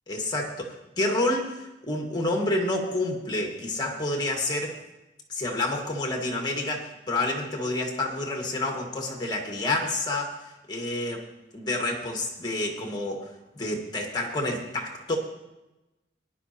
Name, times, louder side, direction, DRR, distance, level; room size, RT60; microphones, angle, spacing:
voice 1, 0.1-4.8 5.3-10.4 10.7-11.3 11.5-15.2, left 2 dB, 25° left, 1 dB, 1.7 m, -29 dB
17.5 x 10.5 x 2.9 m, 1.0 s
head